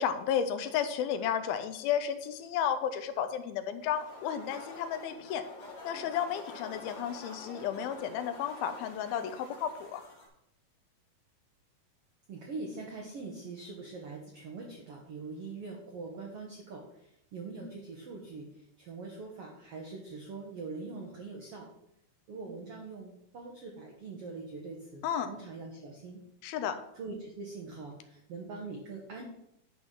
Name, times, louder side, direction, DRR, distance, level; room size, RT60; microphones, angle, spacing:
voice 1, 0.0-5.4 5.8-10.0 25.0-25.3 26.4-26.8, left 8 dB, 85° left, 9 dB, 2.5 m, -33 dB
sound 1, 3.8-10.3, left 3 dB, 50° left, 2.9 m, -47 dB
voice 2, 12.3-18.5 18.8-21.7 22.3-26.2 26.9-29.2, right 3 dB, 80° right, 1 dB, 1.3 m, -43 dB
9.7 x 6.1 x 3.8 m, 0.78 s
omnidirectional pair, 4.3 m